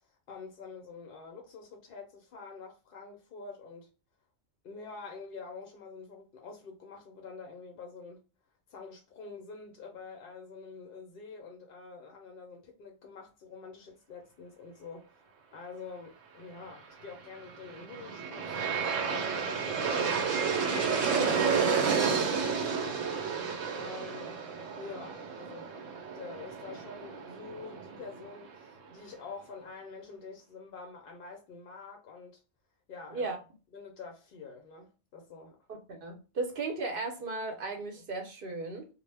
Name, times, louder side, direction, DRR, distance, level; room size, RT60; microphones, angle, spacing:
voice 1, 0.3-3.9 4.6-8.2 8.7-23.3 23.7-24.5 24.8-32.4 32.9-33.4 33.7-35.6, left 4 dB, 60° left, 0.6 m, -46 dB
Aircraft, 17.5-28.5, right 6 dB, 80° right, 1.0 m, -31 dB
voice 2, 35.7-38.9, right 3 dB, 55° right, 0.7 m, -36 dB
2.1 x 2.1 x 3.2 m
omnidirectional pair, 1.3 m